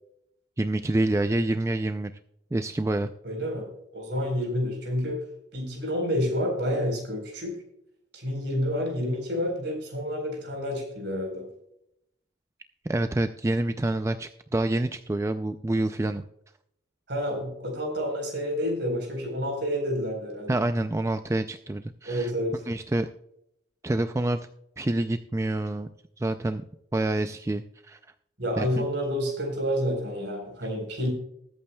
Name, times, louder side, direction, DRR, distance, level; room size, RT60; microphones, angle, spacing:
voice 1, 0.6-2.1 2.5-3.1 12.8-16.2 20.5-22.3 22.7-23.1 23.8-24.4 24.8-25.9 26.2-26.6 26.9-28.0 28.6-28.8, right 2 dB, 15° right, 9 dB, 0.3 m, -27 dB
voice 2, 3.2-3.7 3.9-5.2 5.5-7.5 8.1-11.5 17.1-20.5 22.0-22.6 28.4-31.1, equal, 65° right, 2 dB, 4.0 m, -29 dB
20.5 x 8.6 x 2.2 m, 0.78 s
head